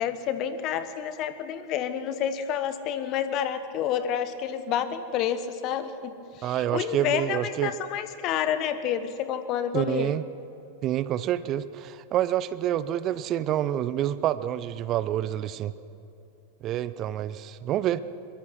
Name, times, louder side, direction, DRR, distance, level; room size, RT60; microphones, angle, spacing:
voice 1, 0.0-10.1, left 9 dB, 40° left, 11 dB, 1.2 m, -29 dB
voice 2, 6.4-7.7 9.7-10.2 10.8-15.7 16.6-18.0, right 12 dB, 35° right, 16 dB, 0.7 m, -27 dB
23.0 x 21.5 x 6.2 m, 2.8 s
figure-of-eight pair, 90°, 0 cm